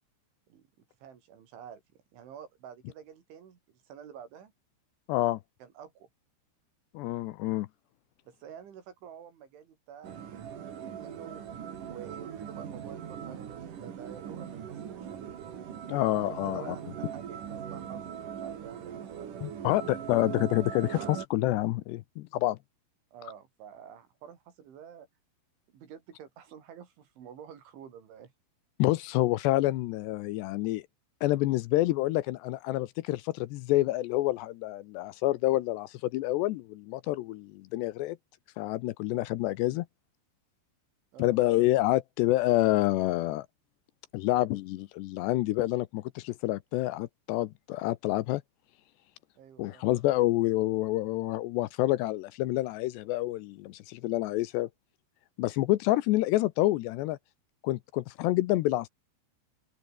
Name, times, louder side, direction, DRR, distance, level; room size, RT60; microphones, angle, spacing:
voice 1, 1.0-1.8 2.1-4.5 5.6-6.1 8.2-10.4 10.8-11.4 11.9-15.5 16.3-19.3 23.1-25.1 25.7-28.3 41.1-41.4 49.4-49.9, right 8 dB, 80° right, 6.0 m, -49 dB
voice 2, 5.1-5.4 6.9-7.7 15.9-16.8 19.4-22.6 28.8-30.8 31.2-38.2 38.6-39.9 41.2-43.5 44.1-48.4 49.6-54.7 55.4-57.2 57.6-58.9, left 17 dB, 80° left, 2.7 m, -28 dB
sound 1, 10.0-21.3, right 8 dB, 50° right, 3.5 m, -40 dB
open air
omnidirectional pair, 5.4 m